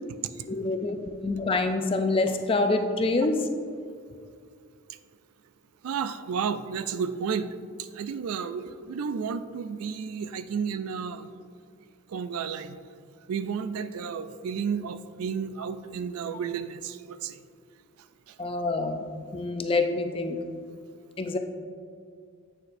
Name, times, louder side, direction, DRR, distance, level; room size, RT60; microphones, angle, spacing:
voice 1, 0.5-3.5 18.4-19.1 19.3-20.4 21.2-21.4, left 3 dB, 25° left, 6 dB, 0.4 m, -26 dB
voice 2, 5.8-7.5 7.8-11.3 12.1-12.8 13.3-17.4 18.3-18.4, right 6 dB, 90° right, 12 dB, 0.4 m, -32 dB
8.7 x 6.5 x 2.6 m, 2.2 s
head